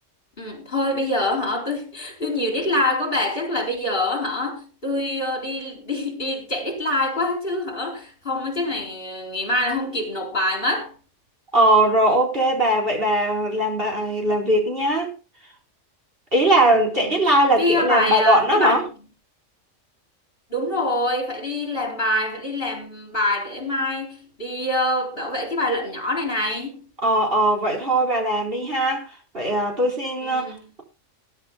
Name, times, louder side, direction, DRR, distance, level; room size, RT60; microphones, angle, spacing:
voice 1, 0.4-11.0 17.0-17.2 17.6-18.9 20.5-26.9 30.2-30.7, left 1 dB, 45° left, 4.4 m, -25 dB
voice 2, 11.5-15.1 16.3-18.8 27.0-30.8, right 1 dB, 45° right, 4.6 m, -20 dB
21.0 x 11.0 x 2.3 m
omnidirectional pair, 1.3 m